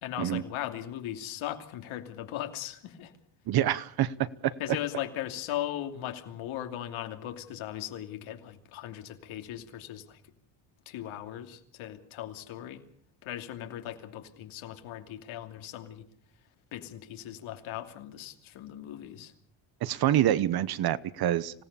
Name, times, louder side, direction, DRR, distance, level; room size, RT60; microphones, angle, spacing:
voice 1, 0.0-3.1 4.6-10.2 10.9-12.8 13.2-16.1 16.7-19.3, left 12 dB, 75° left, 6 dB, 2.9 m, -38 dB
voice 2, 3.5-4.5 19.8-21.6, right 12 dB, 50° right, 17 dB, 1.0 m, -26 dB
26.0 x 17.5 x 6.9 m, 0.62 s
cardioid pair, 160°, 49 cm